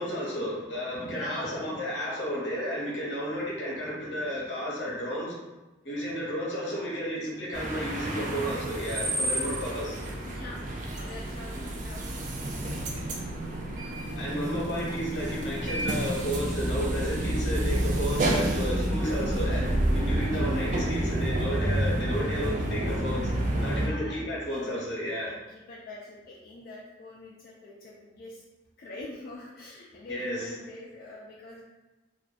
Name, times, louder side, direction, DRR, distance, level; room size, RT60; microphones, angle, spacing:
voice 1, 0.0-5.4 5.8-10.0 14.2-23.3 23.6-25.3 30.1-30.4, equal, 80° left, -5 dB, 0.8 m, -32 dB
voice 2, 1.1-1.8 10.2-14.3 19.4-19.8 23.7-24.9 25.2-28.4 28.8-31.6, left 2 dB, 50° left, -6 dB, 0.3 m, -45 dB
sound 1, 7.5-23.9, right 1 dB, 45° right, 0.3 m, -29 dB
2.4 x 2.2 x 2.4 m, 1.1 s
head